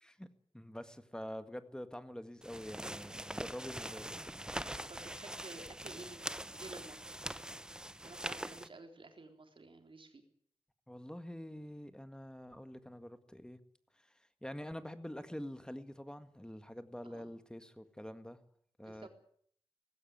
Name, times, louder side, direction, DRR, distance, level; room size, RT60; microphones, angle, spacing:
voice 1, 0.5-4.2 10.9-13.6 14.4-18.4 18.8-19.1, equal, 10° left, 10 dB, 1.8 m, -46 dB
sound 1, 2.4-8.7, right 1 dB, 10° right, 0.8 m, -43 dB
voice 2, 4.9-7.1 8.0-10.2 17.0-17.3 18.8-19.1, right 3 dB, 60° right, 5 dB, 3.8 m, -52 dB
18.5 x 16.5 x 9.4 m, 0.63 s
wide cardioid pair, 90°, 10 cm